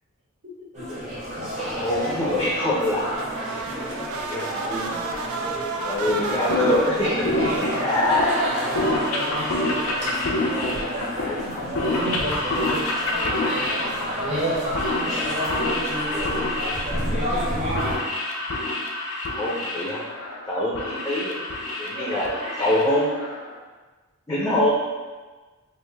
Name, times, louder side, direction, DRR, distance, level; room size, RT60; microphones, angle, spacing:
voice 1, 0.4-0.9 4.3-5.0 15.0-16.6 21.8-22.9 24.4-24.6, right 1 dB, 60° right, -4 dB, 0.8 m, -37 dB
sound 1, 0.7-18.0, equal, 35° right, 1.0 m, -29 dB
voice 2, 1.7-3.2 4.3-4.9 5.8-8.3 11.2-11.4 19.4-20.0 20.5-21.3 21.8-22.3 22.6-23.2 24.3-24.7, left 1 dB, 15° left, -6 dB, 0.5 m, -24 dB
sound 2, 3.2-11.6, right 4 dB, 80° right, 0.4 m, -33 dB
sound 3, 6.1-23.5, left 2 dB, 85° left, 0.5 m, -28 dB
3.2 x 2.5 x 3.4 m, 1.3 s
head